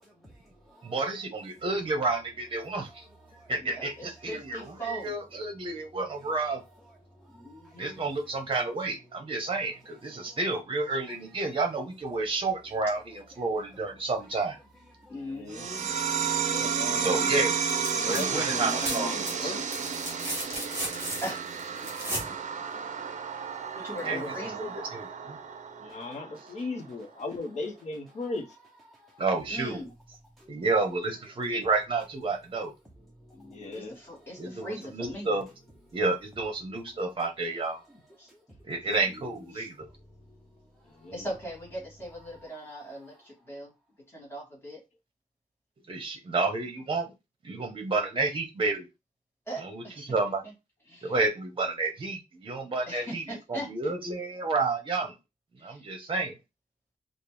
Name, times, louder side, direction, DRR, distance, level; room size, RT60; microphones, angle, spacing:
voice 1, 0.8-3.0 3.5-6.6 7.8-14.6 17.0-17.5 18.0-19.5 24.0-25.4 29.2-29.8 30.5-32.7 34.4-35.5 35.9-37.8 38.6-39.9 45.9-47.1 47.4-48.9 49.6-50.4 51.0-55.1 55.6-56.3, right 3 dB, 40° right, 0.9 m, -30 dB
voice 2, 3.6-5.1 7.3-8.1 15.1-15.9 21.2-21.4 23.8-24.7 29.5-29.9 33.3-35.3 38.2-38.3 38.8-39.7 41.1-43.7 44.1-44.8 49.5-50.1 50.4-50.5 50.9-51.1 52.9-53.9 55.6-55.9, equal, 15° left, 1.9 m, -40 dB
voice 3, 7.2-7.8 10.2-10.4 15.0-15.1 18.0-18.1 20.1-20.8 21.8-23.0 23.5-23.8 25.4-26.0 28.9-29.2 30.4-30.5 38.3-38.4, equal, ahead, 0.6 m, -57 dB
voice 4, 15.1-15.6 16.5-17.1 17.9-19.7 23.9-24.5 25.8-28.6 33.5-34.0 40.8-41.3, left 3 dB, 55° left, 0.7 m, -37 dB
sound 1, 15.5-26.5, right 6 dB, 60° right, 0.5 m, -32 dB
sound 2, 17.6-18.2 18.5-22.3 24.0-24.1, right 1 dB, 15° right, 1.4 m, -35 dB
4.4 x 2.0 x 3.3 m
wide cardioid pair, 170°, 14 cm